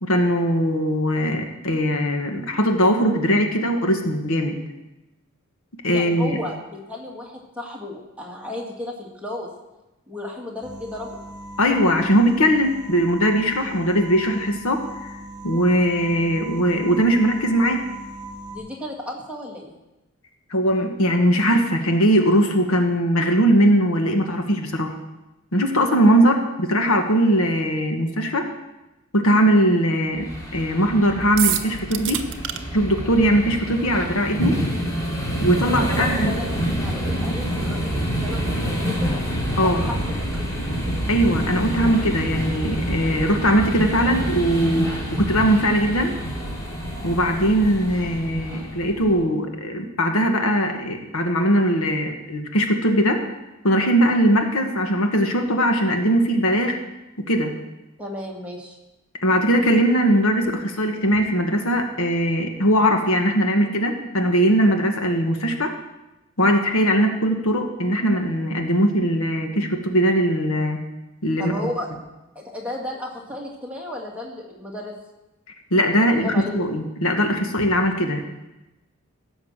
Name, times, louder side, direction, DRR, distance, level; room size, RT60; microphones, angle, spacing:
voice 1, 0.0-4.6 5.8-6.4 11.6-15.2 15.4-17.9 20.5-25.0 25.5-28.5 29.1-32.2 32.7-34.6 35.4-36.3 39.6-39.8 41.1-46.1 47.0-53.2 53.6-56.8 57.2-57.5 59.2-65.7 66.4-70.8 71.2-71.5 75.7-78.3, equal, 75° left, 4 dB, 1.5 m, -20 dB
voice 2, 5.9-9.5 10.1-11.2 18.5-19.8 35.6-39.2 39.6-40.0 58.0-58.8 71.4-71.9 72.4-74.9 75.9-76.7, left 1 dB, 5° right, -3 dB, 2.2 m, -34 dB
sound 1, 10.6-18.6, right 1 dB, 35° right, 2.4 m, -38 dB
sound 2, 30.2-49.2, equal, 15° left, 3.0 m, -27 dB
sound 3, 31.4-32.6, right 11 dB, 60° right, 0.8 m, -25 dB
16.0 x 6.3 x 7.4 m, 1.0 s
head